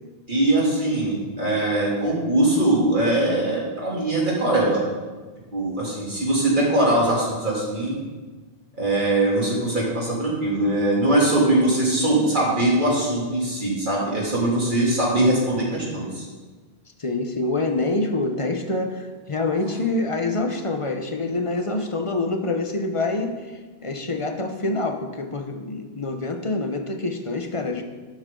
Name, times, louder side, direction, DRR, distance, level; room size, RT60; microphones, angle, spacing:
voice 1, 0.3-4.8 5.5-8.0 8.8-16.2, right 1 dB, 50° right, -5 dB, 3.1 m, -21 dB
voice 2, 17.0-23.3 23.8-27.8, left 2 dB, 30° left, 5 dB, 0.9 m, -26 dB
12.0 x 8.5 x 3.8 m, 1.3 s
omnidirectional pair, 1.1 m